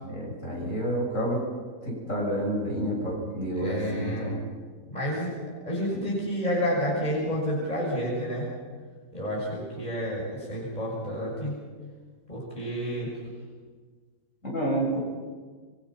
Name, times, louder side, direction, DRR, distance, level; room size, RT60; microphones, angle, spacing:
voice 1, 0.0-1.4 1.8-4.4 5.9-6.0 14.4-15.0, right 1 dB, 50° left, -2 dB, 7.9 m, -29 dB
voice 2, 3.6-4.4 4.9-5.3 5.7-8.5 9.1-11.5 12.3-13.1, equal, 25° left, -4 dB, 6.1 m, -30 dB
26.5 x 23.5 x 5.9 m, 1.5 s
omnidirectional pair, 1.8 m